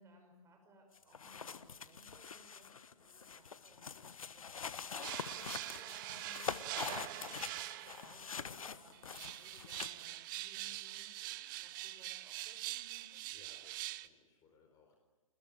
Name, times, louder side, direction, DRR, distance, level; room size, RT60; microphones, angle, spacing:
voice 1, 0.0-13.2, right 1 dB, 15° right, 3 dB, 6.0 m, -63 dB
sound 1, 1.0-10.0, left 6 dB, 75° left, 1.3 m, -45 dB
sound 2, 5.0-8.3 8.9-14.1, right 17 dB, 35° right, 0.8 m, -44 dB
voice 2, 13.3-15.0, left 4 dB, 20° left, 2 dB, 4.4 m, -65 dB
26.5 x 21.0 x 9.0 m, 1.2 s
figure-of-eight pair, 125°, 18 cm